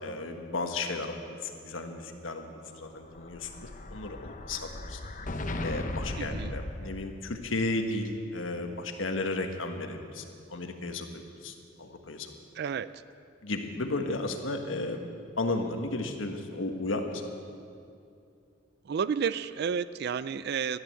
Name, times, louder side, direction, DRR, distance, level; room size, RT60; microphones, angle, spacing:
voice 1, 0.0-5.0 5.6-10.2 10.5-12.3 13.4-15.1 15.4-17.3, left 2 dB, 85° left, 5 dB, 1.4 m, -34 dB
Explosion, 2.8-7.5, left 2 dB, 40° left, 0.9 m, -37 dB
voice 2, 6.2-6.5 12.6-12.9 18.9-20.8, right 7 dB, 55° right, 15 dB, 0.4 m, -31 dB
14.0 x 11.0 x 7.7 m, 2.5 s
head